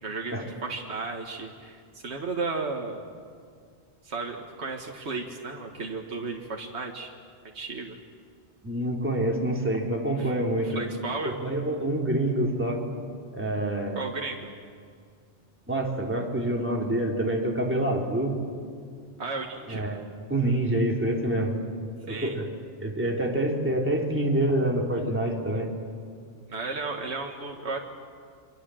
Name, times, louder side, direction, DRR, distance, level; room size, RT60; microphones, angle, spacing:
voice 1, 0.0-3.1 4.0-7.1 7.5-7.9 10.2-10.3 10.6-11.4 14.0-14.5 19.2-19.9 22.1-22.4 26.5-27.8, right 3 dB, 75° right, 1 dB, 2.0 m, -34 dB
voice 2, 8.6-10.8 11.2-12.8 13.3-14.0 15.7-18.4 19.7-20.0 20.3-21.5 22.1-22.5 22.8-25.7, right 1 dB, 10° right, -1 dB, 3.2 m, -26 dB
28.0 x 24.5 x 7.7 m, 2.2 s
omnidirectional pair, 1.1 m